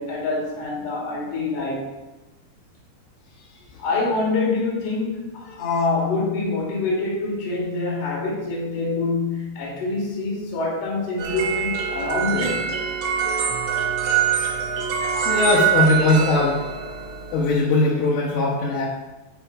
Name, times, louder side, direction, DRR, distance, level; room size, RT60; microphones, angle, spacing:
voice 1, 0.0-2.0 3.8-12.7, left 3 dB, 45° left, -4 dB, 4.0 m, -25 dB
sound 1, 11.2-17.5, right 8 dB, 85° right, 4.8 m, -24 dB
voice 2, 15.3-16.6 17.3-18.9, left 2 dB, 85° left, -5 dB, 4.0 m, -20 dB
10.0 x 8.0 x 4.7 m, 1.1 s
omnidirectional pair, 5.5 m